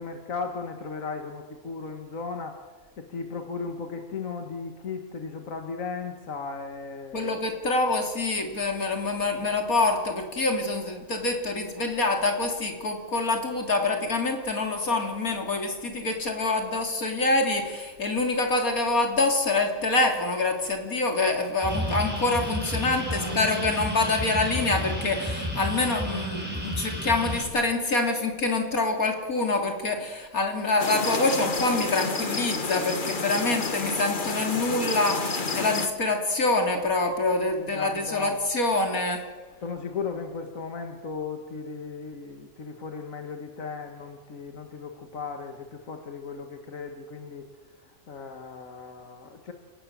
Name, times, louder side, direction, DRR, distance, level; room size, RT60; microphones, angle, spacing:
voice 1, 0.0-2.6 3.0-7.4 23.0-23.6 37.7-38.4 39.6-47.5 48.1-49.5, left 4 dB, 70° left, 5 dB, 2.0 m, -36 dB
voice 2, 7.1-39.2, left 2 dB, 85° left, 3 dB, 3.7 m, -26 dB
sound 1, 21.6-27.4, equal, 5° right, 5.3 m, -31 dB
sound 2, 30.8-35.9, left 3 dB, 35° left, 1.6 m, -30 dB
29.5 x 18.0 x 7.4 m, 1.4 s
omnidirectional pair, 1.5 m